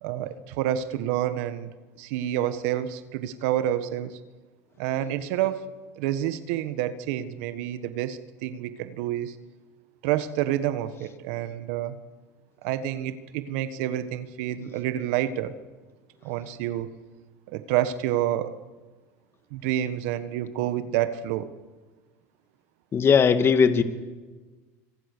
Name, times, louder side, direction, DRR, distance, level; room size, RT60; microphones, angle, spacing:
voice 1, 0.0-1.7 2.0-4.2 4.8-5.7 6.0-9.3 10.0-12.0 12.6-15.6 16.2-16.9 17.5-18.5 19.5-21.5, right 12 dB, 75° right, 12 dB, 1.4 m, -28 dB
voice 2, 22.9-23.8, left 6 dB, 30° left, 9 dB, 2.1 m, -18 dB
26.0 x 26.0 x 6.8 m, 1.3 s
supercardioid pair, 110°, 8 cm